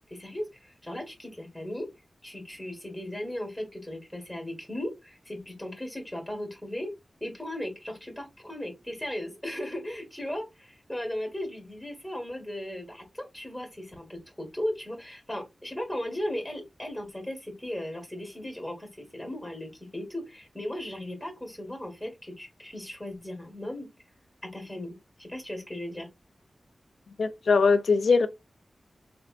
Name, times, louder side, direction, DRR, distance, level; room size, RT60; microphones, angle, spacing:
voice 1, 0.1-1.9 2.2-6.9 7.2-23.9 24.4-26.1, left 1 dB, 5° left, 1.6 m, -37 dB
voice 2, 27.2-28.3, left 4 dB, 80° left, 0.5 m, -21 dB
3.8 x 3.3 x 2.5 m
wide cardioid pair, 105°, 0 cm